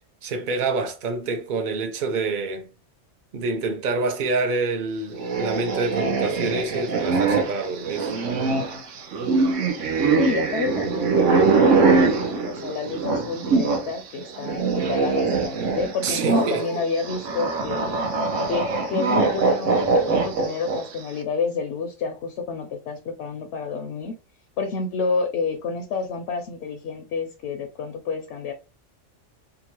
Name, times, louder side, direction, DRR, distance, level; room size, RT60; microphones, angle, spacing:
voice 1, 0.2-2.7 3.3-8.2 16.0-16.6, right 3 dB, 50° right, 0.7 m, -27 dB
sound 1, 5.1-13.9 14.2-21.0, right 4 dB, 85° right, 1.0 m, -23 dB
voice 2, 10.1-18.0 18.5-24.1 24.6-28.5, left 5 dB, 70° left, 0.8 m, -29 dB
2.9 x 2.3 x 2.9 m
omnidirectional pair, 1.2 m